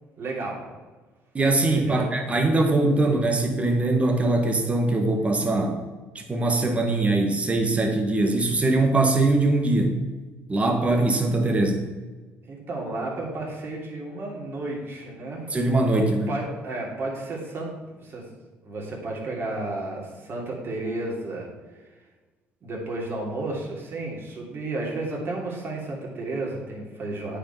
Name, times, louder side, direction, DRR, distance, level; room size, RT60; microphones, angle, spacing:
voice 1, 0.2-0.7 1.7-2.1 12.4-15.5 15.9-17.7 18.0-18.2 18.6-21.9 22.6-27.4, right 2 dB, 45° right, -2 dB, 3.1 m, -32 dB
voice 2, 1.3-5.8 6.1-9.9 10.5-11.8 15.5-16.3, right 2 dB, 25° right, 4 dB, 1.6 m, -22 dB
8.8 x 5.1 x 5.7 m, 1.3 s
cardioid pair, 90°, 5 cm